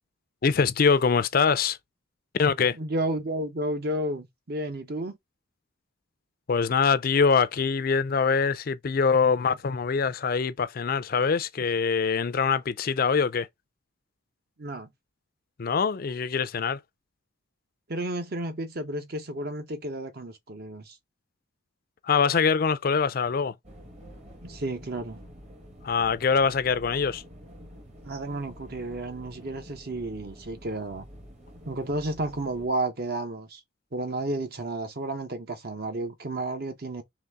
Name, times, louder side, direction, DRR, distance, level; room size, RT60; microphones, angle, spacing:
voice 1, 0.4-1.8 2.4-2.8 6.5-13.5 15.6-16.8 22.0-23.5 25.8-27.2, left 5 dB, 45° left, 0.4 m, -24 dB
voice 2, 2.7-5.2 14.6-14.9 17.9-21.0 24.4-25.2 28.0-31.1 31.7-33.6 33.9-37.0, right 1 dB, 50° right, 0.8 m, -32 dB
sound 1, 23.6-32.7, equal, 35° right, 1.1 m, -48 dB
3.9 x 3.2 x 3.4 m
head